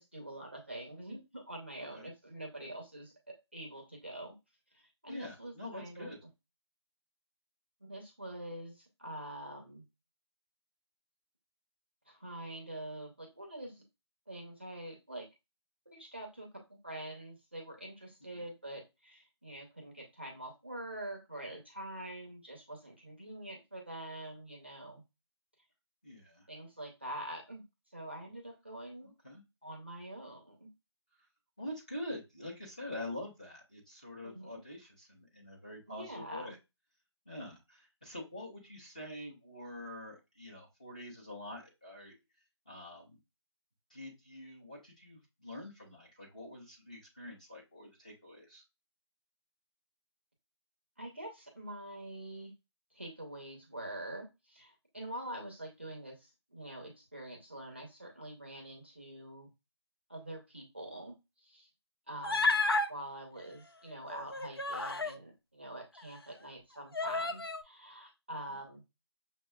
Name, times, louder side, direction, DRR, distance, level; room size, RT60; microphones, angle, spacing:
voice 1, 0.0-4.3 4.7-6.1 7.8-9.8 12.1-13.8 14.3-15.3 15.9-25.0 26.5-27.6 27.9-29.1 29.6-30.7 34.2-34.5 36.0-36.5 51.0-52.5 52.9-59.5 60.1-61.7 62.1-62.5 62.9-68.8, right 1 dB, 25° right, 1 dB, 0.6 m, -45 dB
voice 2, 5.1-6.2 18.3-18.4 26.0-26.5 29.0-29.4 31.6-36.6 37.3-42.1 42.7-43.2 43.9-48.6 62.2-62.3 68.5-68.6, left 1 dB, 15° left, -4 dB, 0.8 m, -46 dB
Human voice, 62.2-62.9 64.1-65.2 66.0-66.1 66.9-67.6, left 3 dB, 55° left, 0.5 m, -31 dB
6.2 x 2.3 x 2.3 m, 0.24 s
figure-of-eight pair, 175°, 15 cm